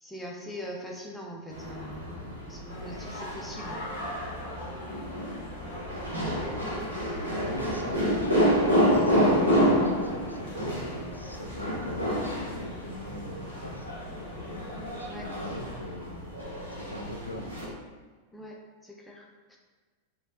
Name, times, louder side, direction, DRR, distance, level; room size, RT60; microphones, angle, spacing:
voice 1, 0.0-2.2 2.5-3.8 15.0-15.3 18.3-18.6 18.8-19.6, equal, 5° left, -2 dB, 0.6 m, -42 dB
sound 1, 1.5-17.7, equal, 85° right, 1.0 m, -29 dB
sound 2, 2.7-15.8, left 1 dB, 60° left, 0.7 m, -44 dB
voice 2, 7.3-13.9 14.9-16.3 16.7-17.6, equal, 90° left, 1 dB, 0.4 m, -40 dB
4.2 x 2.8 x 2.4 m, 1.4 s
figure-of-eight pair, 90°, 0 cm